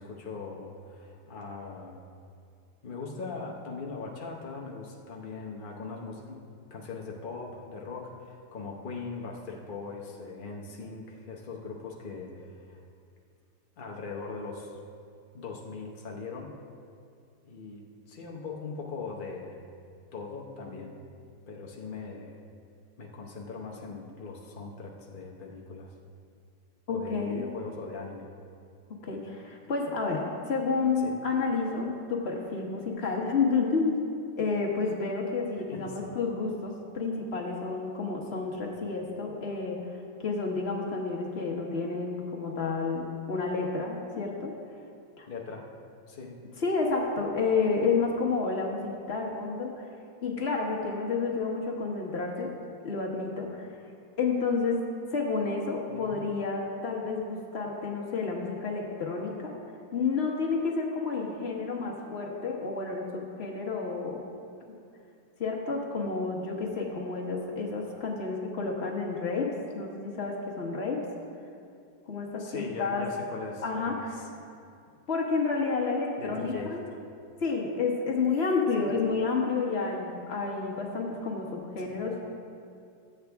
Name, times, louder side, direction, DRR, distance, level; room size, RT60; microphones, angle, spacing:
voice 1, 0.0-2.0 2.8-6.5 6.7-12.8 13.8-14.8 15.3-16.5 17.4-19.6 20.1-21.0 21.5-22.3 23.0-25.9 26.9-28.3 31.0-31.1 35.7-36.1 45.3-45.7 46.1-46.4 55.9-56.2 72.4-74.0 76.2-77.0 78.8-78.9 81.8-82.0, left 4 dB, 60° left, -1 dB, 0.5 m, -40 dB
voice 2, 26.9-27.5 28.9-34.1 34.4-39.9 40.2-44.6 45.2-45.3 46.6-49.8 50.2-52.6 52.8-53.7 54.2-59.5 59.9-64.3 65.4-71.0 72.1-73.1 73.6-74.2 75.1-76.8 77.4-82.2, left 4 dB, 40° left, -1 dB, 1.2 m, -30 dB
13.5 x 8.2 x 3.5 m, 2.4 s
omnidirectional pair, 2.1 m